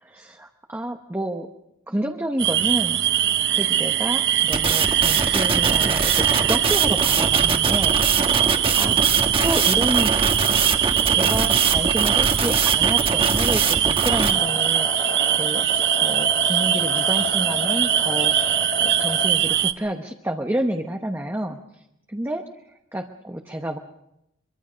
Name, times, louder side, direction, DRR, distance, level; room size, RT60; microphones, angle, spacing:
voice 1, 0.0-1.5 1.9-3.0 3.5-8.0 8.7-9.0 9.4-10.2 11.1-21.8 22.1-22.5 22.9-23.8, right 1 dB, 10° right, 3 dB, 1.0 m, -29 dB
sound 1, 2.4-19.7, right 11 dB, 55° right, 0.9 m, -21 dB
sound 2, 4.5-14.3, right 4 dB, 25° right, 1.5 m, -23 dB
sound 3, 14.3-19.3, left 5 dB, 20° left, 1.8 m, -31 dB
24.0 x 23.5 x 5.1 m, 0.84 s
head